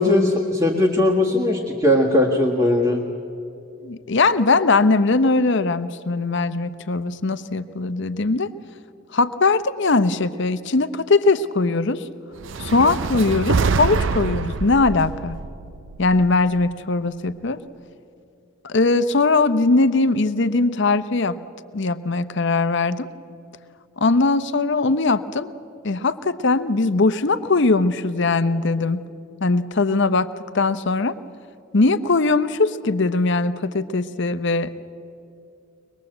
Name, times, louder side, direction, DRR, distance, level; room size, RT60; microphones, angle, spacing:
voice 1, 0.0-3.0, left 1 dB, 15° right, -3 dB, 1.7 m, -19 dB
voice 2, 3.8-8.5 9.1-12.1 12.6-15.4 16.0-17.6 18.6-21.4 21.7-23.1 24.0-25.5 25.8-29.0 29.4-30.3 30.5-31.1 31.7-34.8, left 3 dB, 55° left, 13 dB, 0.8 m, -20 dB
sound 1, 12.4-16.6, right 4 dB, 60° right, 0.5 m, -25 dB
23.5 x 21.0 x 7.9 m, 2.7 s
head